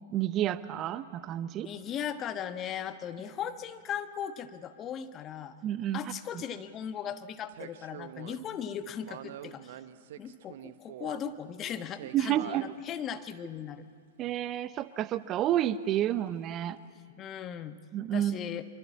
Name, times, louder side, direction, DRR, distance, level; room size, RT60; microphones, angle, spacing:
voice 1, 0.0-1.7 5.6-6.0 6.3-6.4 12.1-12.6 14.2-16.8 17.9-18.4, right 12 dB, 30° right, 15 dB, 0.8 m, -30 dB
voice 2, 1.6-5.6 5.9-9.8 10.2-13.8 17.2-17.8 18.1-18.6, left 9 dB, 30° left, 10 dB, 1.2 m, -38 dB
sound 1, 2.6-2.7 7.5-8.5 9.0-11.3 11.9-12.7 13.5-13.6, right 12 dB, 55° right, 1.1 m, -45 dB
25.5 x 24.0 x 8.5 m, 2.2 s
figure-of-eight pair, 105°, 0 cm